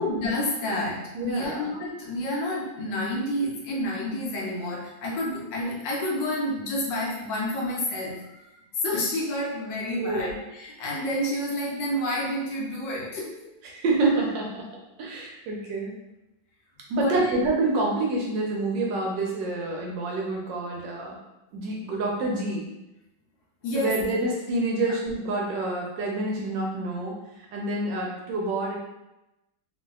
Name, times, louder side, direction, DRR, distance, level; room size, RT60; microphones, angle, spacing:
voice 1, 0.0-13.6 17.0-17.3 23.6-24.0 24.7-24.9, left 1 dB, 70° left, -3 dB, 1.2 m, -29 dB
voice 2, 1.1-1.6 9.9-10.3 13.7-14.7 15.0-15.9 16.9-21.2 21.5-22.7 23.7-27.2 27.5-28.8, right 2 dB, 75° right, -1 dB, 1.2 m, -27 dB
3.0 x 2.6 x 2.3 m, 0.93 s
omnidirectional pair, 2.1 m